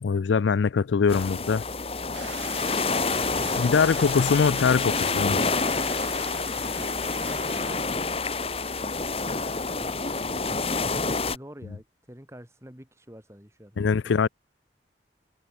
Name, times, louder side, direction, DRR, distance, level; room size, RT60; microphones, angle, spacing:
voice 1, 0.0-1.6 3.5-5.4 13.8-14.3, left 5 dB, 80° left, 0.4 m, -22 dB
sound 1, 1.1-11.4, left 4 dB, 30° left, 1.7 m, -28 dB
sound 2, 2.1-7.8, right 6 dB, 85° right, 5.1 m, -42 dB
voice 2, 6.6-7.0 7.6-8.4 8.8-8.9 9.3-10.9 11.3-13.8 14.2-14.3, equal, 15° right, 3.8 m, -47 dB
open air
head